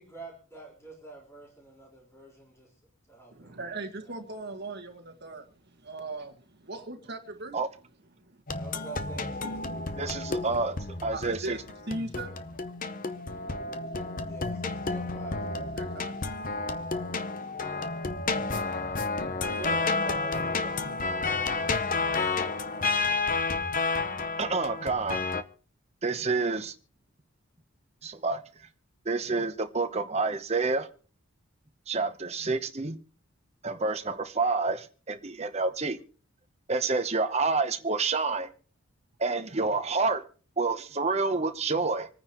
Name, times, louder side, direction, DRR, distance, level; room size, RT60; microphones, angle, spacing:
voice 1, 0.0-2.7 3.1-3.7 4.0-4.2 8.5-10.2 14.2-15.4 19.4-20.9, right 3 dB, 15° left, 4.2 m, -46 dB
voice 2, 3.3-7.6 8.2-8.3 11.1-14.3 15.5-16.3, right 2 dB, 50° right, 1.8 m, -40 dB
sound 1, 8.5-25.4, left 3 dB, 40° left, 0.8 m, -31 dB
voice 3, 10.0-10.8 11.0-11.6 24.4-25.2 26.0-26.7 28.0-28.4 29.0-30.9 31.9-33.0 33.6-36.0 36.7-38.5 39.2-40.2 40.6-42.1, right 3 dB, 30° right, 0.9 m, -28 dB
26.5 x 9.6 x 3.1 m
head